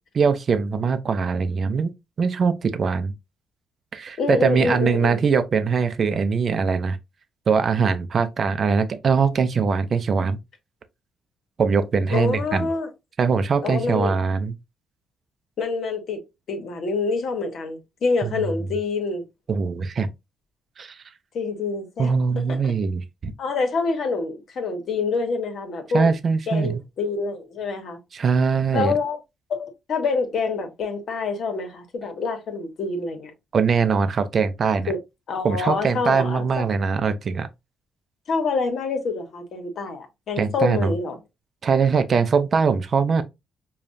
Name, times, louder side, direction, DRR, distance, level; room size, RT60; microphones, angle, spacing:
voice 1, 0.1-1.9 2.2-3.1 3.9-7.0 7.5-10.4 11.6-12.7 13.2-14.5 18.2-18.4 19.5-20.1 20.8-21.0 22.0-23.3 25.9-26.8 28.1-28.9 33.5-34.9 35.4-37.5 40.4-40.9 41.6-43.2, right 5 dB, 50° right, 0.5 m, -22 dB
voice 2, 4.2-5.2 12.1-12.9 13.6-14.1 15.6-16.2 16.5-19.2 21.3-22.7 23.4-26.1 26.5-28.0 28.7-29.2 29.5-33.3 34.9-35.0 35.3-36.7 38.3-41.2, left 4 dB, 65° left, 1.2 m, -26 dB
5.0 x 2.3 x 2.6 m
cardioid pair, 90°, 0 cm